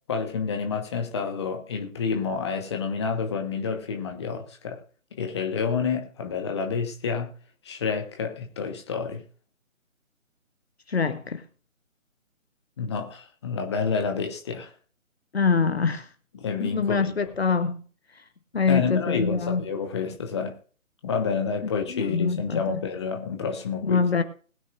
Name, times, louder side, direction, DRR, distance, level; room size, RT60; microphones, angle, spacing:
voice 1, 0.1-4.8 5.1-7.3 7.6-9.2 12.8-14.7 16.3-17.3 18.7-20.5 21.0-24.0, left 5 dB, 20° left, 1.3 m, -29 dB
voice 2, 10.9-11.4 15.3-16.1 16.6-17.8 18.5-19.6 21.6-22.8 23.8-24.2, left 5 dB, 50° left, 1.1 m, -24 dB
20.5 x 9.4 x 2.5 m
figure-of-eight pair, 150°, 41 cm